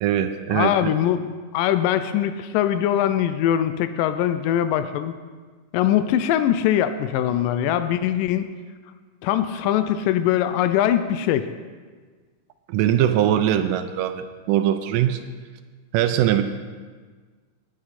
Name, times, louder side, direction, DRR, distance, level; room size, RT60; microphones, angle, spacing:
voice 1, 0.0-0.9 12.7-15.2 15.9-16.4, right 11 dB, 85° right, 8 dB, 2.2 m, -21 dB
voice 2, 0.5-1.3 1.5-5.1 5.7-8.5 9.2-11.5, left 11 dB, 85° left, 10 dB, 2.2 m, -22 dB
18.5 x 7.7 x 4.2 m, 1.5 s
omnidirectional pair, 3.8 m